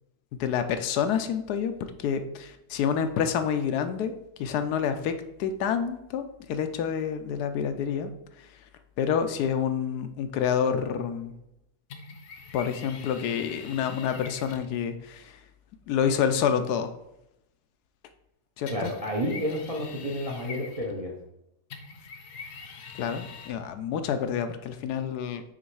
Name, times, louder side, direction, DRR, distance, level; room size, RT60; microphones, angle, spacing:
voice 1, 0.4-4.1 4.4-5.1 5.4-8.1 9.0-11.3 12.5-15.4 15.9-16.9 18.6-18.9 23.0-25.4, left 7 dB, 85° left, 9 dB, 1.2 m, -28 dB
sound 1, 11.9-14.7 18.7-21.1 21.7-23.5, left 5 dB, 65° left, 1.0 m, -44 dB
voice 2, 18.7-21.1, equal, 35° right, -1 dB, 0.5 m, -30 dB
6.3 x 3.3 x 4.6 m, 0.83 s
omnidirectional pair, 1.6 m